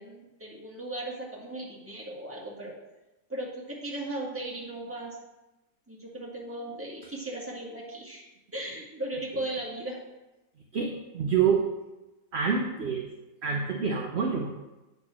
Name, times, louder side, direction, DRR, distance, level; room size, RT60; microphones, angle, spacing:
voice 1, 0.0-2.7 3.3-5.2 5.9-10.0, right 1 dB, 10° right, -4 dB, 1.7 m, -37 dB
voice 2, 10.7-11.6 12.3-13.1 13.4-14.5, right 6 dB, 50° right, 1 dB, 0.8 m, -27 dB
8.4 x 4.3 x 6.0 m, 1.0 s
omnidirectional pair, 1.8 m